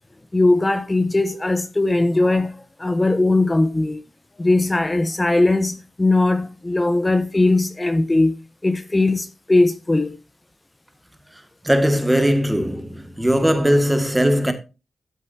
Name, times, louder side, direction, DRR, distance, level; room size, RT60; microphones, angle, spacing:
voice 1, 0.3-4.0 4.4-8.4 8.6-10.2, left 2 dB, 25° left, 1.0 m, -19 dB
voice 2, 11.6-14.5, equal, 10° right, 2.0 m, -19 dB
13.0 x 8.1 x 2.8 m
cardioid pair, 65°, 0 cm